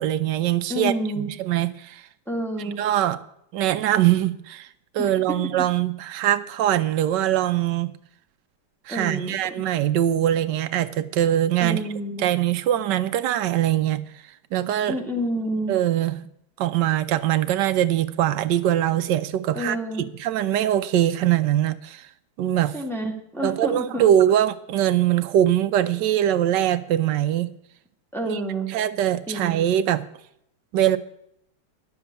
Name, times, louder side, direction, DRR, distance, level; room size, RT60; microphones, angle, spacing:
voice 1, 0.0-2.0 2.8-3.2 3.5-4.7 4.9-7.9 8.9-11.8 12.2-14.0 14.5-15.0 15.7-16.1 16.6-19.8 20.2-22.1 22.4-22.7 23.4-27.5 28.3-28.4 28.7-30.0 30.7-31.0, right 12 dB, 85° right, 12 dB, 1.3 m, -22 dB
voice 2, 0.7-1.3 2.3-2.8 5.0-5.4 8.9-9.3 11.6-12.2 14.9-15.7 19.5-20.0 22.7-24.1 28.1-28.7 29.3-29.6, right 1 dB, ahead, 0 dB, 1.8 m, -29 dB
11.0 x 7.2 x 8.1 m, 0.75 s
omnidirectional pair, 1.8 m